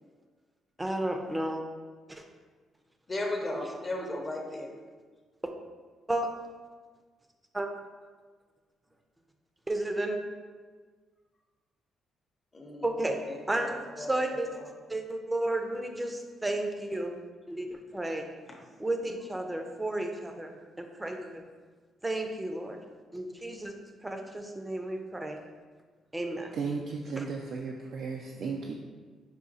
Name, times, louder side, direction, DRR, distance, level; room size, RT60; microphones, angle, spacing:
voice 1, 0.8-1.6 2.1-2.2 6.1-6.3 7.5-7.7 9.7-10.2 12.8-13.2 13.5-13.7 14.0-14.5 14.9-17.2 17.5-18.3 18.8-21.5 22.0-22.8 23.1-23.7 24.0-25.4 26.1-26.5 27.2-27.3, right 1 dB, 15° right, 4 dB, 0.5 m, -32 dB
voice 2, 3.1-4.7 12.5-14.7 18.5-18.6, left 1 dB, 30° left, 1 dB, 0.7 m, -37 dB
voice 3, 26.5-28.7, right 5 dB, 70° right, 0 dB, 0.3 m, -35 dB
4.8 x 2.3 x 4.0 m, 1.5 s
cardioid pair, 90°, 0 cm